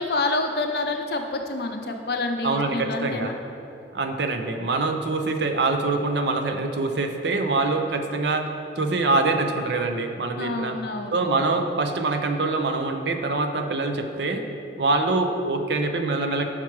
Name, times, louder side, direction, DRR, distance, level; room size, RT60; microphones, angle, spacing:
voice 1, 0.0-3.3 10.4-11.1, left 2 dB, 60° left, 4 dB, 0.6 m, -27 dB
voice 2, 2.4-3.3 3.9-8.5 8.8-10.8 11.1-14.4 14.8-16.4, right 3 dB, 70° right, 6 dB, 0.6 m, -24 dB
6.0 x 5.8 x 4.6 m, 2.7 s
head